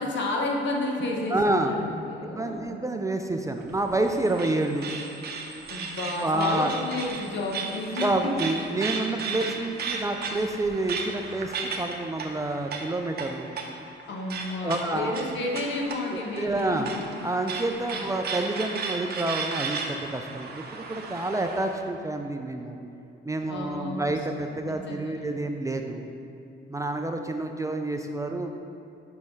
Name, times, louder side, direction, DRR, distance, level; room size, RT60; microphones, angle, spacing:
voice 1, 0.0-2.8 5.7-8.4 9.4-9.5 14.1-17.0 17.9-18.1 23.5-25.3, left 2 dB, 65° left, -1 dB, 1.1 m, -31 dB
voice 2, 1.3-1.7 2.2-4.9 6.2-6.7 8.0-13.5 14.6-15.2 16.1-16.9 17.2-22.8 23.3-26.0 26.7-28.6, right 2 dB, 15° right, 4 dB, 0.4 m, -28 dB
sound 1, 3.6-21.8, right 4 dB, 55° right, 0.8 m, -35 dB
5.6 x 5.3 x 4.7 m, 2.8 s
cardioid pair, 90°, 20 cm